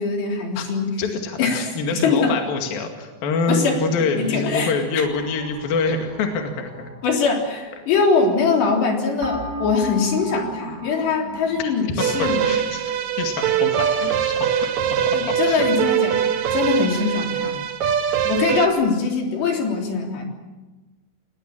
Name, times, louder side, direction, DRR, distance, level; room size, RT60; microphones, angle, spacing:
voice 1, 0.0-0.9 1.4-1.7 1.9-2.3 3.5-3.8 4.2-4.7 7.0-12.4 15.1-17.6 18.2-20.3, left 4 dB, 80° left, 1 dB, 5.8 m, -22 dB
voice 2, 1.0-6.9 11.6-11.7 12.0-15.7 16.9-17.2, left 4 dB, 60° left, 3 dB, 3.7 m, -26 dB
sound 1, 5.0-8.9 9.2-11.9, left 1 dB, 25° right, 3.6 m, -36 dB
sound 2, 12.0-18.7, right 9 dB, 60° right, 2.1 m, -22 dB
29.5 x 19.5 x 7.4 m, 1.2 s
omnidirectional pair, 4.9 m